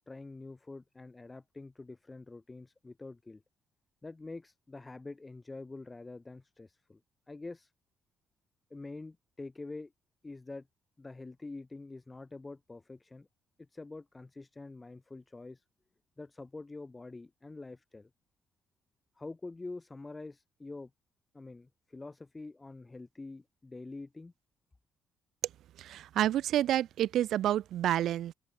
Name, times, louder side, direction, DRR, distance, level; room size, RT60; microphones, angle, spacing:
voice 1, 0.1-3.4 4.0-7.0 7.3-7.7 8.7-9.9 10.2-10.7 11.0-13.3 13.6-15.6 16.2-18.1 19.2-20.9 21.3-24.3, left 3 dB, 20° left, 3.1 m, -46 dB
voice 2, 25.8-28.3, right 12 dB, 70° right, 0.4 m, -29 dB
supercardioid pair, 65°, 0 cm